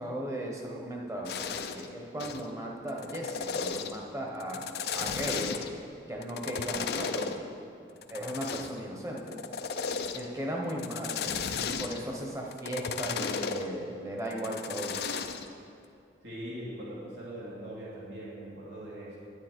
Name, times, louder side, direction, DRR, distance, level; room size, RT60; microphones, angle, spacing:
voice 1, 0.0-4.6 4.9-5.7 6.1-7.5 8.1-9.4 10.1-15.0, equal, 15° right, -1 dB, 1.1 m, -36 dB
sound 1, 1.3-1.9 2.2-2.5 2.9-4.0 4.4-5.8 6.2-7.4 8.0-8.8 9.2-10.3 10.7-12.1 12.5-13.6 14.3-15.5, left 6 dB, 60° left, 0.5 m, -34 dB
voice 2, 16.2-19.2, right 1 dB, 80° right, -7 dB, 2.5 m, -41 dB
9.9 x 9.4 x 4.5 m, 2.4 s
head